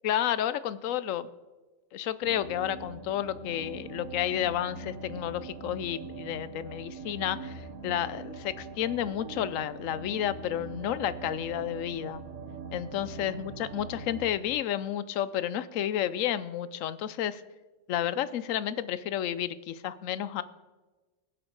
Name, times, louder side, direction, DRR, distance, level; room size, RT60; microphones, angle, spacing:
voice 1, 0.0-1.3 1.9-12.2 12.7-17.4 17.9-20.4, left 11 dB, 75° left, 15 dB, 1.0 m, -31 dB
sound 1, 2.2-14.3, right 4 dB, 90° right, 1.5 m, -42 dB
21.0 x 7.9 x 3.9 m, 1.3 s
omnidirectional pair, 1.4 m